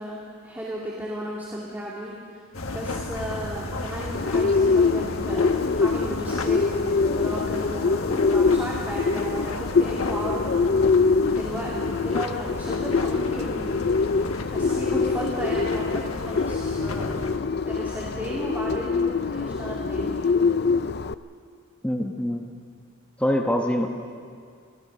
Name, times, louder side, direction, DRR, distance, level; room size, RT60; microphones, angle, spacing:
voice 1, 0.0-10.5 11.3-14.0 14.5-17.2 17.7-20.3, equal, 10° right, -5 dB, 2.4 m, -34 dB
sound 1, 2.5-17.4, left 2 dB, 80° left, 1.3 m, -34 dB
Bird, 4.1-21.1, left 4 dB, 50° left, 0.5 m, -24 dB
voice 2, 21.8-22.5 23.2-23.9, equal, 5° left, 1 dB, 1.1 m, -24 dB
26.0 x 17.0 x 6.7 m, 2.2 s
head